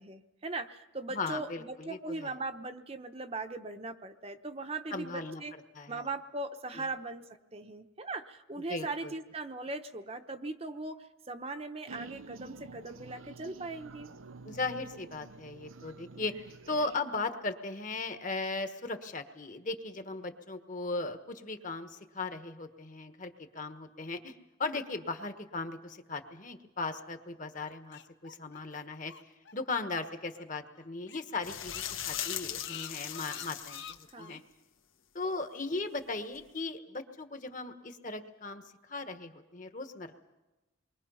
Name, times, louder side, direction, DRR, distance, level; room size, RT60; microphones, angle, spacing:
voice 1, 0.0-5.5 5.9-7.3 7.5-14.1 34.1-34.4, right 3 dB, 30° right, 7 dB, 0.9 m, -39 dB
voice 2, 1.1-2.4 4.9-5.4 5.7-6.1 6.7-6.8 8.7-9.1 14.4-34.4 35.1-40.1, left 3 dB, 40° left, 8 dB, 1.4 m, -38 dB
sound 1, 11.9-17.0, right 3 dB, 80° right, 0.8 m, -49 dB
sound 2, 27.6-30.1 30.4-30.5 30.8-30.9 31.1-34.4, left 8 dB, 55° left, 0.9 m, -47 dB
sound 3, 31.4-34.1 36.3-36.4, left 10 dB, 80° left, 1.7 m, -39 dB
28.5 x 22.5 x 5.6 m, 1.0 s
head